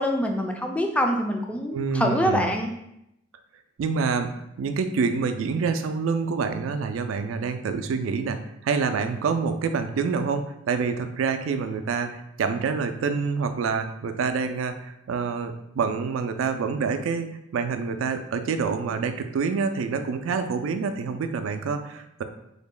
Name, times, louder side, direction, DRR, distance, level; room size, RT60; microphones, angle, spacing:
voice 1, 0.0-2.7, equal, 5° left, 2 dB, 0.3 m, -25 dB
voice 2, 1.7-2.5 3.8-4.3 4.6-22.2, right 5 dB, 85° right, 8 dB, 0.3 m, -27 dB
3.3 x 2.1 x 3.7 m, 0.81 s
head